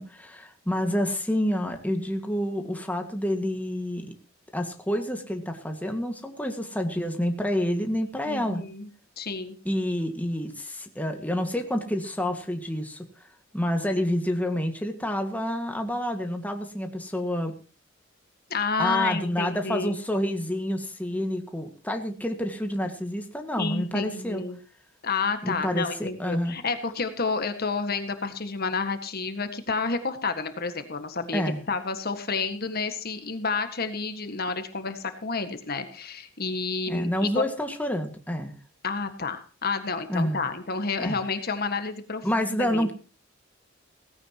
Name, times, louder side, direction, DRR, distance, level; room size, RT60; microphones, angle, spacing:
voice 1, 0.0-4.1 4.5-8.6 9.6-13.0 13.5-17.5 18.8-24.4 25.4-26.6 31.3-31.6 36.9-38.6 40.1-40.4 41.0-41.2 42.2-42.9, equal, 10° left, 4 dB, 1.8 m, -28 dB
voice 2, 8.3-8.9 9.2-9.5 18.5-20.0 23.6-24.6 25.0-37.5 38.8-42.9, left 4 dB, 50° left, 8 dB, 1.7 m, -30 dB
17.5 x 16.0 x 3.0 m, 0.37 s
head